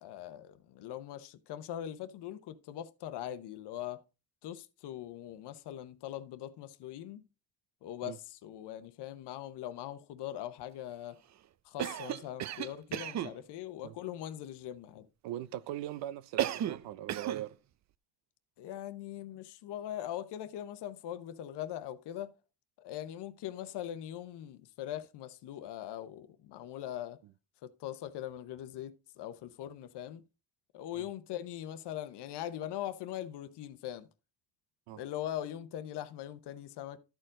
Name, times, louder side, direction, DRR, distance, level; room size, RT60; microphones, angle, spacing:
voice 1, 0.0-4.0 4.4-7.2 7.8-11.2 11.6-15.1 18.6-22.4 22.8-27.2 27.6-30.2 30.7-34.1 35.0-37.0, left 11 dB, 70° left, 0.9 m, -41 dB
Cough, 11.8-13.4 16.4-16.8 17.1-17.5, right 11 dB, 40° right, 0.5 m, -34 dB
voice 2, 15.2-17.5 30.9-31.1 34.9-35.0, right 13 dB, 85° right, 0.7 m, -40 dB
12.5 x 4.5 x 3.7 m
cardioid pair, 105°, 42 cm